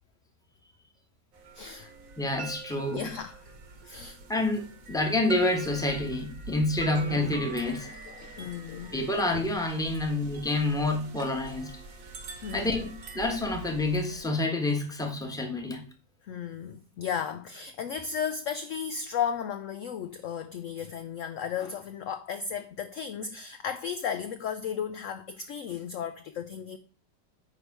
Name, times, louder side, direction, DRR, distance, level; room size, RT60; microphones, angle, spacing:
sound 1, 1.3-14.3, right 3 dB, 55° right, 1.5 m, -44 dB
voice 1, 1.5-1.9 2.7-3.5 3.8-4.2 6.8-7.3 7.6-8.9 12.4-12.9 16.2-26.8, left 7 dB, 70° left, 0.7 m, -35 dB
voice 2, 2.2-3.1 4.3-7.9 8.9-11.7 12.5-15.8, left 2 dB, 5° left, 1.0 m, -28 dB
9.5 x 3.4 x 5.9 m
omnidirectional pair, 1.9 m